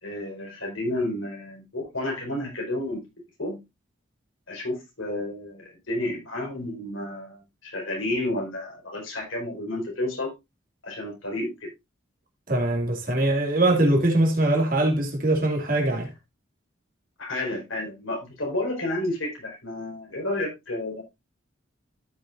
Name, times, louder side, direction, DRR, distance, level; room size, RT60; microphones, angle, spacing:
voice 1, 0.0-3.1 3.4-3.6 4.5-10.3 10.8-11.7 17.2-21.0, left 1 dB, 85° left, 5.1 m, -31 dB
voice 2, 12.5-16.1, right 1 dB, 45° right, 2.5 m, -22 dB
13.5 x 6.6 x 2.6 m
head